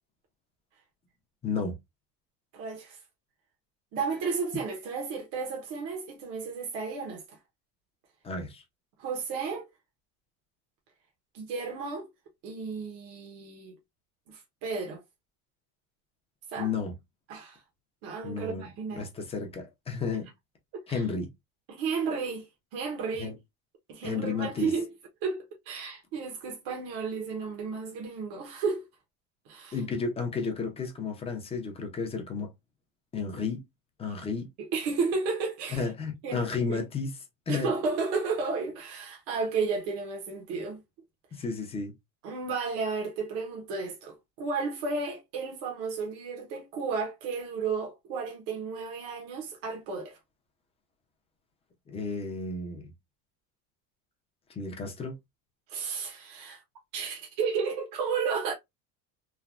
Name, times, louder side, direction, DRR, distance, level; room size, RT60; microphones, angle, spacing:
voice 1, 1.4-1.8 8.2-8.6 16.6-16.9 18.2-20.3 20.9-21.3 23.2-23.3 24.0-24.7 29.7-32.5 33.1-33.6 34.0-34.5 35.7-37.1 37.5-37.7 41.3-41.9 51.9-52.9 54.5-55.1, left 4 dB, 15° left, 0.6 m, -32 dB
voice 2, 2.5-3.0 3.9-7.4 9.0-9.7 11.3-12.1 12.4-13.7 14.3-15.0 16.5-16.7 17.3-17.6 18.0-19.1 20.9-21.0 21.7-23.4 23.9-24.9 25.2-28.8 29.5-29.8 34.6-35.9 36.2-36.8 37.5-40.8 42.2-50.2 55.7-56.6 56.9-58.5, right 5 dB, 65° right, 1.0 m, -33 dB
3.2 x 2.2 x 2.4 m
cardioid pair, 165°, 38 cm